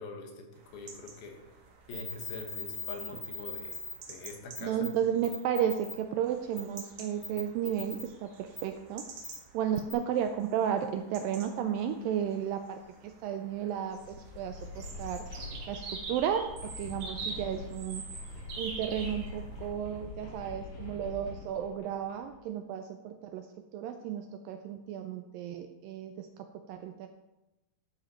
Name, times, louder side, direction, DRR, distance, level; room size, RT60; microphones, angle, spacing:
voice 1, 0.0-1.4 1.9-3.8 4.1-5.0, left 3 dB, 75° left, 3 dB, 3.2 m, -44 dB
sound 1, 0.5-19.7, right 4 dB, 50° right, 2.0 m, -47 dB
sound 2, 1.9-3.9 4.2-4.3 4.5-4.9 5.2-5.9 6.6-6.8 7.2-8.0 8.5-8.6 9.2-9.4 9.8-9.9, left 4 dB, 20° left, 3.4 m, -40 dB
voice 2, 4.6-9.0 9.5-15.2 15.7-16.5 16.8-18.0 18.6-23.5 23.7-26.3 26.7-27.1, right 9 dB, 80° right, 7 dB, 2.0 m, -33 dB
sound 3, 13.8-22.3, left 3 dB, 55° left, 3.5 m, -44 dB
12.0 x 7.6 x 4.3 m, 0.98 s
omnidirectional pair, 4.5 m